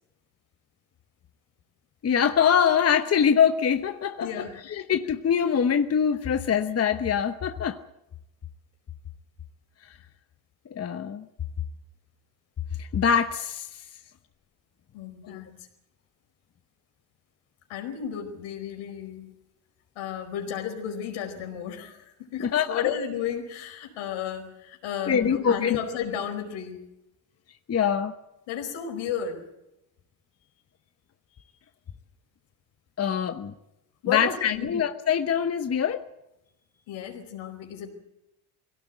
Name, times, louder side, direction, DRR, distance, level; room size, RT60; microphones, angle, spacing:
voice 1, 2.0-7.8 9.8-10.0 10.7-11.2 12.8-13.9 15.2-15.4 22.4-22.9 25.1-25.8 27.7-28.1 33.0-33.5 34.0-36.0, left 7 dB, 30° left, 1.0 m, -24 dB
voice 2, 4.2-4.6 14.9-15.6 17.7-19.3 19.9-26.9 28.5-29.4 34.0-34.8 36.9-37.9, left 8 dB, 75° left, 4.9 m, -33 dB
21.5 x 17.0 x 8.2 m
supercardioid pair, 85°, 48 cm